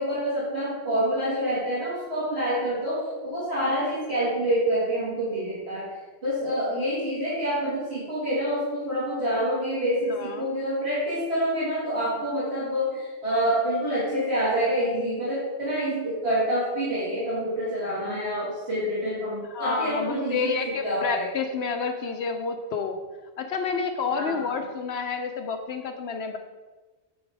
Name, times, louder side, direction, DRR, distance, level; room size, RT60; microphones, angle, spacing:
voice 1, 0.0-5.9 6.2-21.3 24.1-24.5, equal, 65° right, -11 dB, 2.8 m, -27 dB
voice 2, 10.1-10.5 19.5-23.0 23.4-26.4, left 5 dB, 75° left, 5 dB, 0.8 m, -29 dB
9.5 x 4.0 x 4.6 m, 1.3 s
omnidirectional pair, 1.1 m